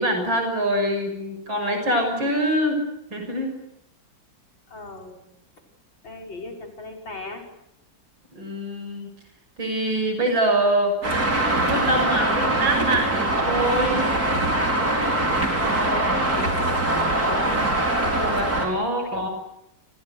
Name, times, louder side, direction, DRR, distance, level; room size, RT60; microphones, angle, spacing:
voice 1, 0.0-2.8 3.1-3.6 8.3-9.1 9.6-10.9 11.4-14.1 15.6-16.2 18.0-19.3, right 1 dB, 90° right, 4 dB, 7.0 m, -25 dB
voice 2, 4.7-5.2 6.0-7.4 15.9-16.5 16.9-17.5 19.0-19.3, left 2 dB, 80° left, 2 dB, 6.9 m, -38 dB
Traffic noise roadway noise, 11.0-18.7, right 1 dB, 50° right, 6.0 m, -22 dB
30.0 x 27.5 x 6.8 m, 0.84 s
omnidirectional pair, 2.1 m